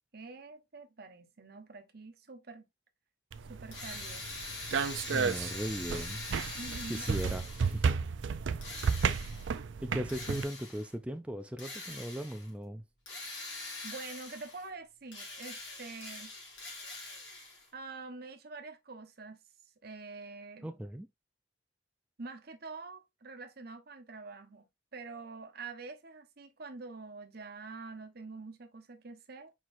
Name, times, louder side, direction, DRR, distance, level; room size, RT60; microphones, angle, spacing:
voice 1, 0.1-2.7 3.5-4.3 6.6-7.1 13.8-16.3 17.7-19.4 19.8-20.7 22.2-29.5, right 3 dB, 55° right, 1.0 m, -46 dB
sound 1, 3.3-10.4, right 5 dB, 80° right, 0.4 m, -33 dB
Drill, 3.7-7.9 8.6-9.6 10.1-10.9 11.6-12.5 13.1-14.7 15.1-17.7, left 2 dB, 70° left, 2.5 m, -43 dB
voice 2, 5.1-6.2 6.9-8.0 9.8-12.8 20.6-21.1, equal, 5° right, 0.3 m, -38 dB
4.5 x 4.4 x 2.5 m
head